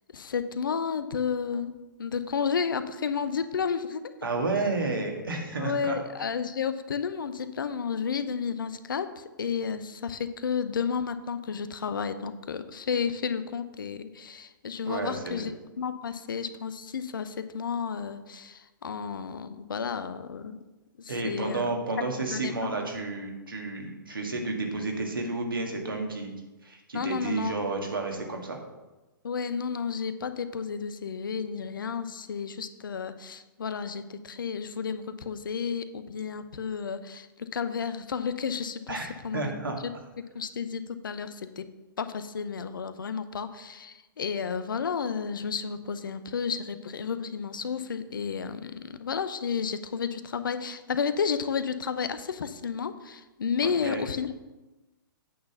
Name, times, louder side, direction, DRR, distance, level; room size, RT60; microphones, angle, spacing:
voice 1, 0.1-1.7 2.0-4.0 5.6-15.5 15.8-20.6 21.0-21.6 22.3-22.5 26.9-27.6 29.2-39.6 40.3-41.6 42.0-54.3, left 6 dB, 70° left, 11 dB, 0.7 m, -32 dB
voice 2, 4.2-6.0 14.9-15.5 21.1-26.3 26.6-28.6 38.9-39.8 53.6-54.0, right 3 dB, 80° right, 2 dB, 1.7 m, -31 dB
8.7 x 4.1 x 6.7 m, 1.1 s
figure-of-eight pair, 115°, 11 cm